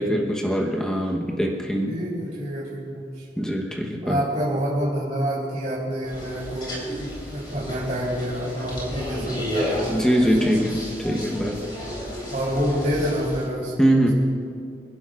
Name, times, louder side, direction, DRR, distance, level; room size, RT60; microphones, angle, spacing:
voice 1, 0.0-1.9 3.4-4.2 9.9-11.6 13.8-14.1, equal, 5° left, -1 dB, 1.0 m, -22 dB
voice 2, 1.9-3.2 4.0-10.6 12.3-14.1, equal, 40° right, -7 dB, 3.2 m, -28 dB
sound 1, 6.0-13.4, equal, 25° left, 3.8 m, -33 dB
27.0 x 11.0 x 2.5 m, 2.3 s
head